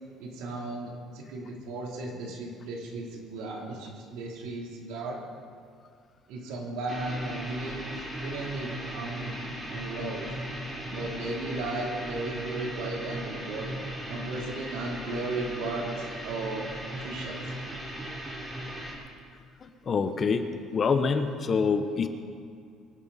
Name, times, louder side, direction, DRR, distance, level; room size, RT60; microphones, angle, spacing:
voice 1, 0.2-5.2 6.3-7.8 8.2-10.4 10.9-13.7 14.1-17.4, right 2 dB, 85° right, -1 dB, 3.3 m, -35 dB
sound 1, 6.9-18.9, right 1 dB, 15° right, 3.2 m, -37 dB
voice 2, 19.6-22.1, left 5 dB, 25° left, 8 dB, 0.8 m, -26 dB
24.5 x 12.0 x 4.2 m, 2.3 s
cardioid pair, 180°, 0 cm